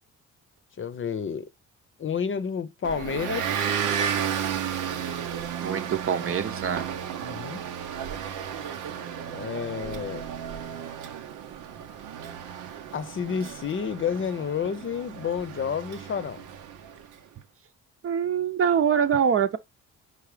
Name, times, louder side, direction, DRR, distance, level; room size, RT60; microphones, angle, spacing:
voice 1, 0.8-1.5 2.0-3.7 7.2-7.6 9.3-10.3 12.9-16.4, left 7 dB, 40° left, 0.7 m, -30 dB
Motor vehicle (road) / Engine, 2.8-17.1, right 8 dB, 85° right, 0.9 m, -33 dB
voice 2, 5.6-6.9 18.0-19.6, right 7 dB, 45° right, 0.8 m, -24 dB
4.8 x 4.1 x 4.9 m
cardioid pair, 90°, 30 cm